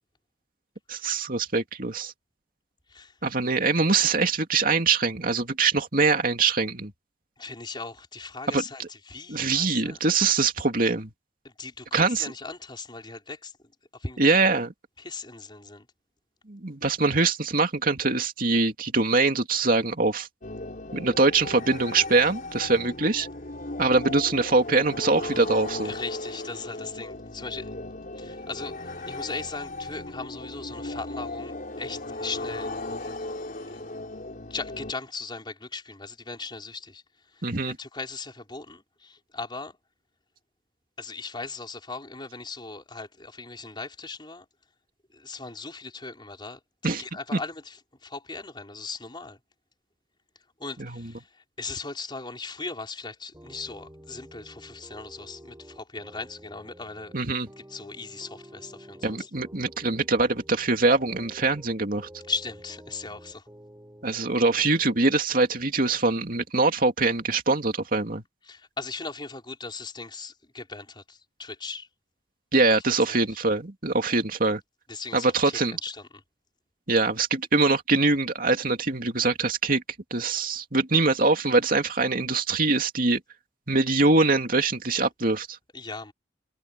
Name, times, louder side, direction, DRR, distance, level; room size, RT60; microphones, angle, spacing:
voice 1, 0.9-2.1 3.2-6.9 8.5-8.9 9.3-11.1 11.9-12.3 14.2-14.7 16.5-20.3 20.9-23.3 23.8-25.9 37.4-37.8 46.8-47.0 47.3-47.4 50.8-51.2 57.1-57.5 59.0-62.1 64.0-68.2 72.5-74.6 75.1-75.8 76.9-79.8 80.1-83.2 83.7-85.6, right 3 dB, 55° right, 2.7 m, -23 dB
voice 2, 7.4-8.8 9.1-10.0 11.6-13.5 14.0-14.3 15.0-15.8 25.8-27.6 28.2-32.7 33.0-33.1 34.5-37.0 37.6-39.7 41.0-44.4 45.2-47.8 48.0-49.4 50.6-51.2 51.6-57.1 57.7-59.3 62.3-63.4 68.5-71.9 73.1-73.2 74.9-75.5 75.8-75.9 85.7-86.1, left 4 dB, 25° left, 4.9 m, -38 dB
sound 1, 20.4-34.9, left 2 dB, 50° left, 4.3 m, -36 dB
sound 2, 53.3-65.1, equal, 15° right, 6.1 m, -49 dB
head